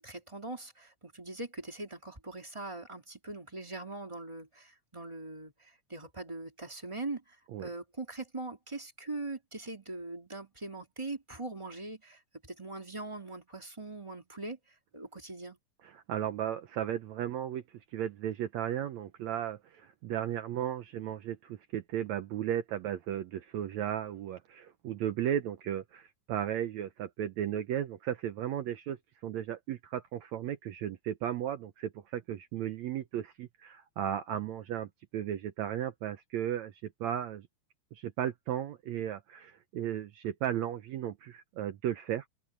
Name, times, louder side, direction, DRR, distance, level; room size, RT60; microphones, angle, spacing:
voice 1, 0.0-14.6 14.9-15.6, right 2 dB, 10° right, 2.5 m, -41 dB
voice 2, 15.8-17.6 17.9-37.5 37.9-42.2, right 10 dB, 75° right, 1.8 m, -35 dB
omnidirectional pair, 3.9 m